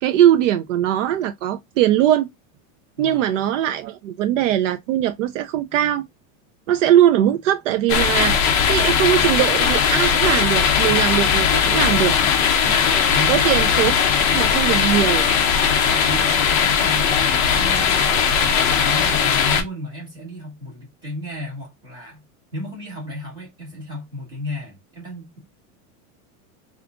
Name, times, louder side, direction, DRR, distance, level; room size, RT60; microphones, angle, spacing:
voice 1, 0.0-2.3 3.0-6.0 6.7-8.4 8.7-12.2 13.3-15.2, right 11 dB, 70° right, 0.5 m, -20 dB
voice 2, 3.0-3.3 12.6-13.5 15.8-22.2 22.5-25.4, left 1 dB, 10° right, 2.0 m, -34 dB
sound 1, 7.9-19.6, left 7 dB, 25° left, 0.4 m, -18 dB
sound 2, 8.5-12.8 14.0-14.4, right 1 dB, 5° left, 0.9 m, -42 dB
3.6 x 2.5 x 3.5 m
supercardioid pair, 180°, 40 cm